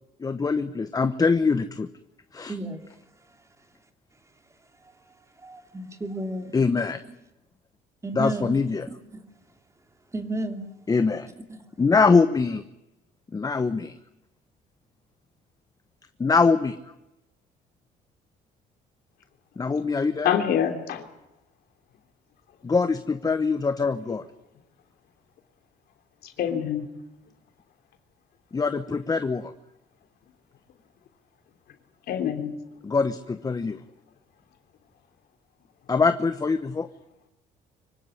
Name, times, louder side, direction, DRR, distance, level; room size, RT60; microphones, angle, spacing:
voice 1, 0.2-1.9 2.3-2.5 6.5-7.0 8.1-8.9 10.9-11.3 11.8-12.6 13.3-13.9 16.2-16.8 19.6-20.4 22.6-24.2 28.5-29.5 32.8-33.8 35.9-36.9, left 4 dB, 20° left, 10 dB, 1.0 m, -23 dB
voice 2, 2.5-2.8 4.8-4.9 5.4-6.5 8.0-8.6 8.9-9.2 10.1-10.6 11.5-11.6, right 1 dB, 15° right, 6 dB, 2.9 m, -32 dB
voice 3, 20.2-21.0 26.4-26.9 32.1-32.5, left 9 dB, 65° left, 6 dB, 3.2 m, -25 dB
24.5 x 16.5 x 9.8 m, 0.91 s
cardioid pair, 110°, 17 cm